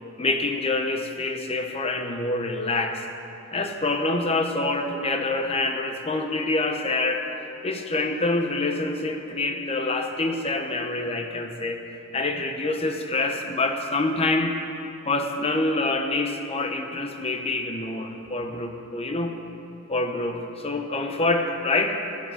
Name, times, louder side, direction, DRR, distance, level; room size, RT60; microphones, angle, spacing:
voice 1, 0.2-3.0 3.5-7.3 7.6-11.8 12.1-14.6 15.1-19.4 19.9-22.0, left 2 dB, 30° left, 5 dB, 0.9 m, -26 dB
14.5 x 8.4 x 6.3 m, 2.8 s
head